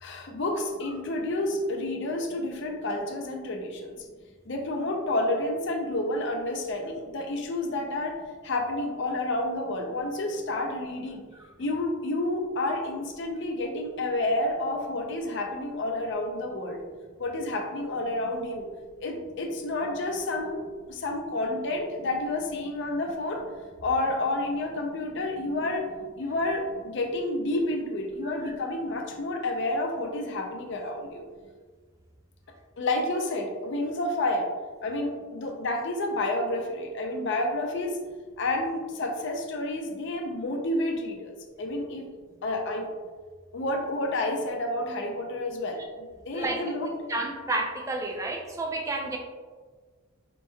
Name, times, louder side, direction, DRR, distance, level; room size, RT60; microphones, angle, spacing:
voice 1, 0.0-4.0 4.5-8.2 8.4-11.2 11.6-16.8 17.2-18.7 19.0-20.6 20.9-23.4 23.8-25.9 26.2-31.2 32.8-34.5 34.8-38.0 38.4-42.1 42.4-42.9 43.5-46.9, left 2 dB, 55° left, 2 dB, 0.5 m, -30 dB
voice 2, 47.1-49.2, right 2 dB, 15° right, 1 dB, 0.4 m, -30 dB
4.4 x 2.9 x 2.2 m, 1.4 s
head